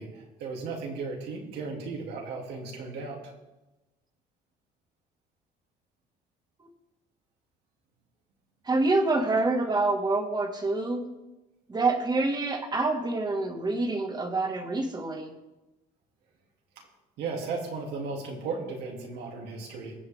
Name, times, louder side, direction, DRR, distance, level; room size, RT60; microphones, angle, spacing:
voice 1, 0.0-3.3 17.2-19.9, right 4 dB, 80° right, 0 dB, 3.2 m, -35 dB
voice 2, 8.7-11.0 11.7-15.3, right 2 dB, 25° right, 3 dB, 2.1 m, -26 dB
23.0 x 7.9 x 3.7 m, 1.0 s
cardioid pair, 110°, 17 cm